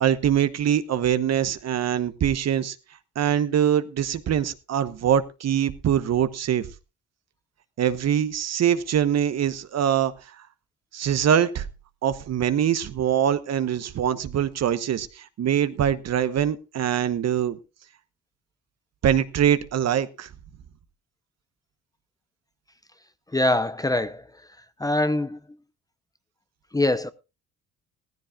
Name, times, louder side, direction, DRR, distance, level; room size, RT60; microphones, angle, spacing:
voice 1, 0.0-2.7 3.2-6.7 7.8-10.1 10.9-11.7 12.0-17.6 19.0-20.3, right 9 dB, 60° right, 1.0 m, -23 dB
voice 2, 23.3-24.3 24.8-25.4 26.7-27.1, left 1 dB, 10° left, 0.7 m, -23 dB
16.5 x 14.5 x 2.4 m
cardioid pair, 90°, 30 cm